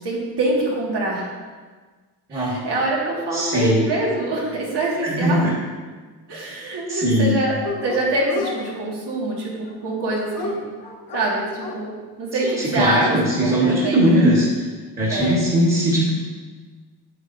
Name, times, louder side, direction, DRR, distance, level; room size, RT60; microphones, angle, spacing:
voice 1, 0.0-1.3 2.3-5.5 6.3-7.5 7.8-10.7 11.1-13.1 13.4-14.2 15.1-15.4, right 2 dB, 85° right, -4 dB, 1.9 m, -25 dB
voice 2, 3.3-3.8 5.0-5.5 6.9-7.4 12.4-14.5 15.0-16.1, equal, 20° right, -5 dB, 1.4 m, -19 dB
Dog, 7.6-8.6 9.7-11.8 12.5-12.6 12.8-13.6, left 4 dB, 55° left, 1.3 m, -31 dB
8.1 x 7.9 x 2.6 m, 1.4 s
wide cardioid pair, 145°, 40 cm